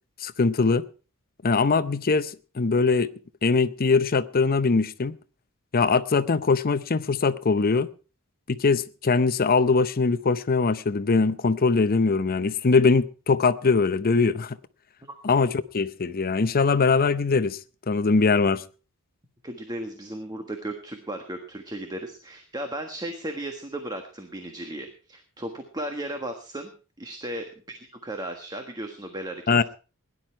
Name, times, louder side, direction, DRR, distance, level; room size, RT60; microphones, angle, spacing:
voice 1, 0.2-0.8 1.4-2.3 2.6-3.1 3.4-5.2 5.7-7.9 8.5-14.6 15.2-17.6 17.9-18.6 29.5-29.6, left 4 dB, 40° left, 0.7 m, -22 dB
voice 2, 19.4-26.7 27.0-29.6, right 1 dB, 20° right, 1.4 m, -35 dB
17.5 x 11.0 x 4.4 m
head